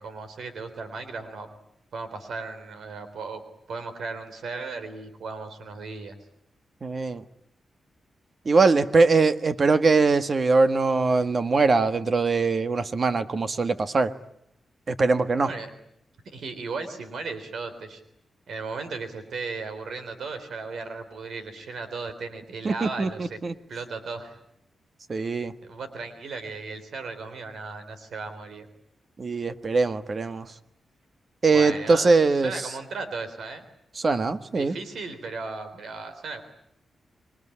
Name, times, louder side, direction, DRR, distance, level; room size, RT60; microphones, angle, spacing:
voice 1, 0.0-1.5 1.9-3.4 3.7-6.1 15.4-15.7 16.3-18.0 18.5-23.4 23.7-24.4 25.6-28.7 31.5-33.6 34.5-36.4, right 4 dB, 80° right, 9 dB, 3.6 m, -36 dB
voice 2, 6.8-7.2 8.4-14.1 14.9-15.5 22.6-23.5 25.1-25.5 29.2-30.4 31.4-32.5 34.0-34.7, right 3 dB, 45° right, 11 dB, 1.4 m, -22 dB
27.0 x 22.0 x 9.9 m, 0.76 s
cardioid pair, 95°, 0 cm